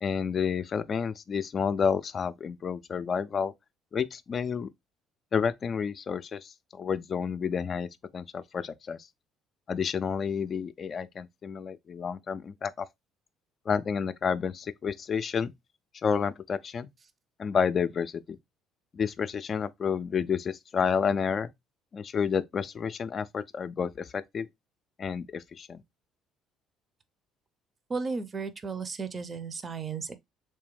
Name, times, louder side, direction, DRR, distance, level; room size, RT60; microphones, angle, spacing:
voice 1, 0.0-3.5 3.9-4.7 5.3-9.0 9.7-12.9 13.7-15.5 16.0-16.9 17.4-18.4 18.9-21.5 21.9-24.5 25.0-25.8, left 6 dB, 40° left, 0.4 m, -30 dB
voice 2, 27.9-30.2, right 4 dB, 35° right, 0.5 m, -34 dB
3.3 x 3.3 x 3.1 m
hypercardioid pair, 55°, 0 cm